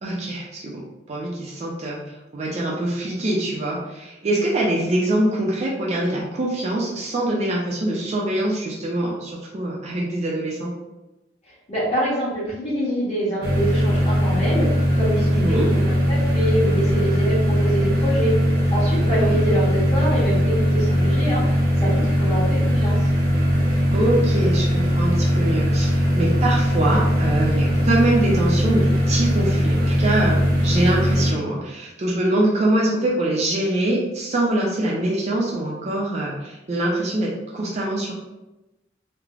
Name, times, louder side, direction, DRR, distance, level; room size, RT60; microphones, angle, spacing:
voice 1, 0.0-10.7 15.3-15.7 19.0-19.4 23.9-38.1, right 1 dB, 40° right, -4 dB, 0.4 m, -24 dB
voice 2, 11.7-14.7 15.0-18.3 18.7-21.4 21.8-23.0, equal, 40° left, -8 dB, 1.1 m, -25 dB
sound 1, 13.4-31.3, equal, 60° right, 0.8 m, -20 dB
3.1 x 2.0 x 2.4 m, 0.99 s
head